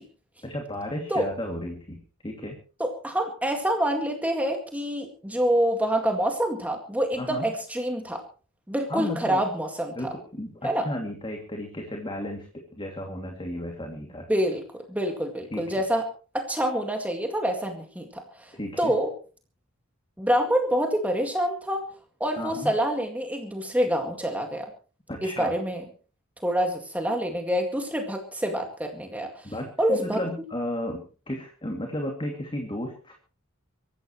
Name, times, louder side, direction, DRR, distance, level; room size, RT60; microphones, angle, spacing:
voice 1, 0.4-2.6 7.1-7.5 8.9-9.4 9.9-14.3 15.5-15.7 18.5-18.9 22.4-22.7 25.1-25.6 29.4-33.1, left 1 dB, 25° left, 2 dB, 2.6 m, -34 dB
voice 2, 2.8-8.2 8.7-10.0 10.6-10.9 14.3-14.6 14.9-16.0 16.3-18.5 18.8-19.1 20.2-21.9 22.2-24.7 25.2-25.8 26.4-29.5 29.8-30.2, equal, 5° right, 3 dB, 2.1 m, -26 dB
24.5 x 14.5 x 3.2 m, 0.37 s
head